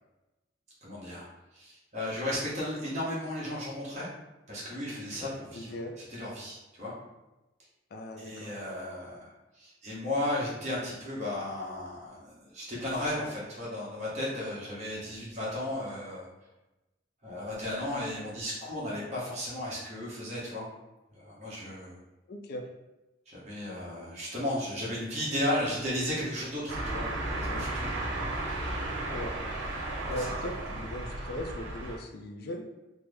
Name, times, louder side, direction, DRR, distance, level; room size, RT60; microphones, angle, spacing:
voice 1, 0.8-1.3 1.5-4.1 4.5-6.9 8.2-16.2 17.2-20.7 21.1-22.0 23.3-27.9 30.0-30.3, left 1 dB, 35° right, -7 dB, 1.0 m, -35 dB
voice 2, 5.5-5.9 7.9-8.5 22.3-22.6 29.1-29.3 30.1-32.6, left 1 dB, 55° left, 3 dB, 0.4 m, -38 dB
sound 1, 26.7-32.0, right 2 dB, 85° right, 0.8 m, -34 dB
3.2 x 2.0 x 3.4 m, 1.0 s
head